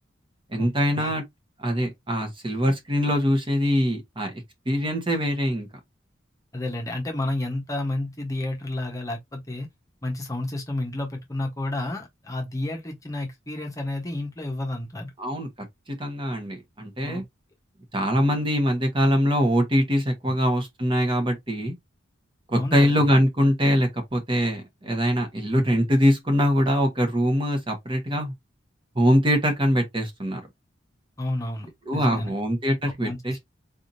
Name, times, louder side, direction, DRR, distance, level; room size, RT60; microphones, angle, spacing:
voice 1, 0.5-1.2 1.6-5.7 15.2-15.5 15.9-17.2 17.9-21.7 22.5-28.3 28.9-30.4 31.8-33.4, equal, 25° right, 1.2 m, -23 dB
voice 2, 6.5-9.7 10.0-15.1 17.0-17.2 20.3-20.4 22.5-23.1 25.5-25.7 31.2-32.3 33.0-33.4, left 1 dB, 15° left, 1.1 m, -31 dB
4.1 x 3.5 x 2.6 m
head